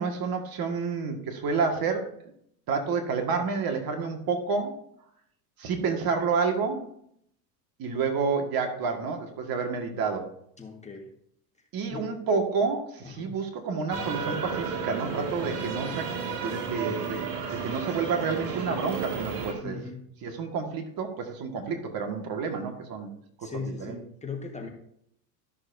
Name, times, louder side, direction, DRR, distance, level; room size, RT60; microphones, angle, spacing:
voice 1, 0.0-2.1 2.7-4.8 5.6-6.9 7.8-10.3 11.7-16.1 16.4-19.8 20.2-23.1 23.4-23.5 23.8-24.0, right 5 dB, 45° right, 4 dB, 1.9 m, -29 dB
voice 2, 10.6-11.1 11.9-12.1 13.0-13.3 19.6-20.1 23.4-24.7, left 4 dB, 15° left, 2 dB, 1.5 m, -38 dB
sound 1, 13.9-19.5, right 5 dB, 75° right, 2.3 m, -33 dB
13.0 x 6.5 x 2.7 m, 0.71 s
hypercardioid pair, 95°, 49 cm